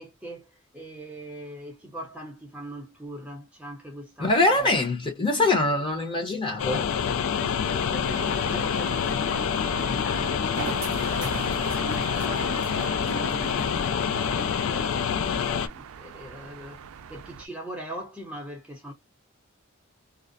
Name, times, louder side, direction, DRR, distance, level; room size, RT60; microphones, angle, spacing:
voice 1, 0.0-4.3 5.4-5.5 7.2-18.9, right 1 dB, 5° right, 0.6 m, -41 dB
voice 2, 4.2-6.9, left 2 dB, 25° left, 0.8 m, -23 dB
sound 1, 6.6-15.7, left 7 dB, 70° left, 0.3 m, -27 dB
sound 2, 8.0-17.5, right 7 dB, 80° right, 0.3 m, -40 dB
2.4 x 2.0 x 2.5 m
head